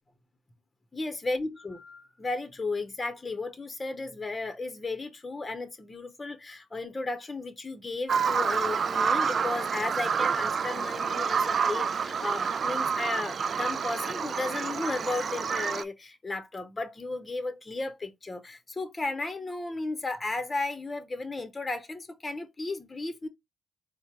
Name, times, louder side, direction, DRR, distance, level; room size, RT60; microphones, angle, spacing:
voice 1, 0.9-23.3, left 3 dB, 25° left, 0.8 m, -34 dB
Bird vocalization bird call bird song, 8.1-15.8, right 6 dB, 45° right, 0.3 m, -28 dB
4.3 x 2.1 x 4.3 m
cardioid pair, 90°, 0 cm